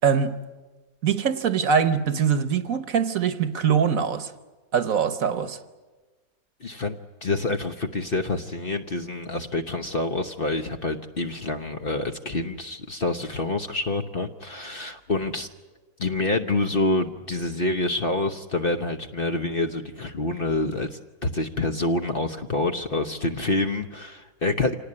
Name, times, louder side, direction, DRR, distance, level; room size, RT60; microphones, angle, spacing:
voice 1, 0.0-0.4 1.0-4.3 4.7-5.6, right 7 dB, 60° right, 1.4 m, -23 dB
voice 2, 6.6-15.5 16.0-24.8, left 2 dB, 40° left, 1.0 m, -27 dB
26.5 x 18.5 x 9.7 m
omnidirectional pair, 1.8 m